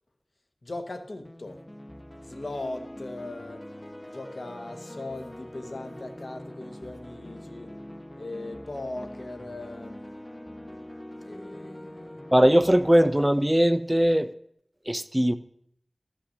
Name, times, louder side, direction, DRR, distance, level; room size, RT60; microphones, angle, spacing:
voice 1, 0.6-1.6 2.2-3.7 4.1-7.7 8.2-10.0 11.2-12.2, left 2 dB, 70° left, 1.2 m, -39 dB
sound 1, 1.2-13.2, left 1 dB, 20° left, 0.7 m, -43 dB
voice 2, 12.3-14.3 14.9-15.4, equal, 15° right, 0.5 m, -20 dB
13.0 x 5.9 x 6.5 m
wide cardioid pair, 45°, 0 cm